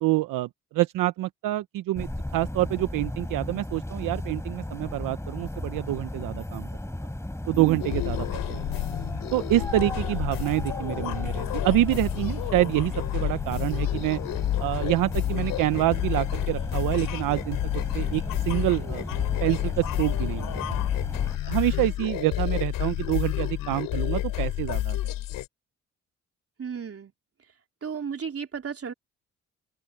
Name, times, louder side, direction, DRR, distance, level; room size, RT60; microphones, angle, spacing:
voice 1, 0.0-6.7 7.5-8.8 9.3-14.2 14.6-17.6 17.9-20.8 21.4-25.0, right 16 dB, 80° right, 0.9 m, -27 dB
sound 1, 2.0-21.4, left 1 dB, 10° left, 4.0 m, -35 dB
sound 2, 7.8-25.5, left 14 dB, 85° left, 3.1 m, -30 dB
voice 2, 26.6-27.1 27.8-28.9, right 6 dB, 45° right, 3.4 m, -34 dB
open air
supercardioid pair, 55°, 32 cm